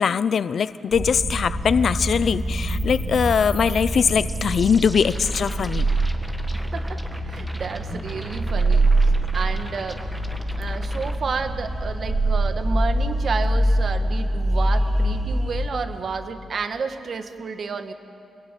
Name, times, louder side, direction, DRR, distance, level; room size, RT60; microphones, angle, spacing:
voice 1, 0.0-5.9, left 6 dB, 55° left, 0.7 m, -21 dB
sound 1, 0.9-15.6, right 1 dB, 30° right, 3.6 m, -24 dB
sound 2, 2.3-11.2, equal, ahead, 1.6 m, -40 dB
voice 2, 6.5-10.0 10.6-17.9, right 5 dB, 50° right, 1.7 m, -31 dB
29.0 x 21.0 x 9.2 m
wide cardioid pair, 135°, 0 cm